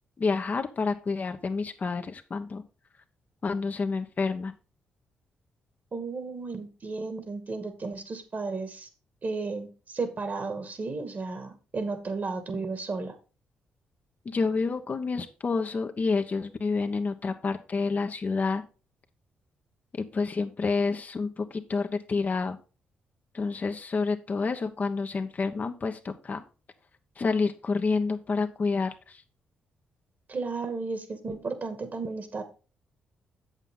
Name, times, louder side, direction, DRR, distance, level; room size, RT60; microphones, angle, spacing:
voice 1, 0.2-2.6 3.4-4.5 14.2-18.6 20.0-22.6 23.3-26.4 27.2-29.2, left 4 dB, 45° left, 6 dB, 1.0 m, -29 dB
voice 2, 5.9-8.9 9.2-13.1 30.3-32.4, right 3 dB, 45° right, 8 dB, 2.2 m, -33 dB
8.1 x 7.5 x 3.8 m, 0.34 s
hypercardioid pair, 45°, 4 cm